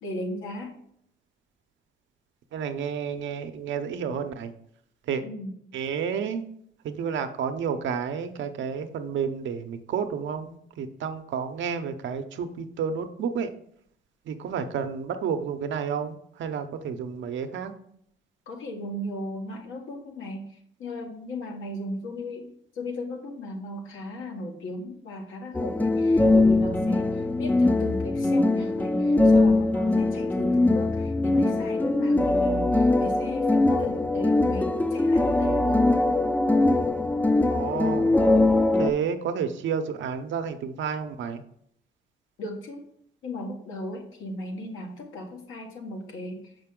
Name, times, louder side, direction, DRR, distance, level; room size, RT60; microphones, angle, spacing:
voice 1, 0.0-0.7 5.2-5.5 18.5-20.4 20.8-35.8 42.4-42.9 43.2-46.5, left 1 dB, 85° left, 1 dB, 1.6 m, -36 dB
voice 2, 2.5-4.5 5.1-5.2 5.7-6.4 6.8-13.5 14.3-17.7 37.5-38.2 38.7-41.4, right 7 dB, 70° right, 8 dB, 0.7 m, -30 dB
sound 1, 25.5-38.9, left 2 dB, 10° left, 0.4 m, -22 dB
6.6 x 5.2 x 3.7 m, 0.69 s
cardioid pair, 90°, 20 cm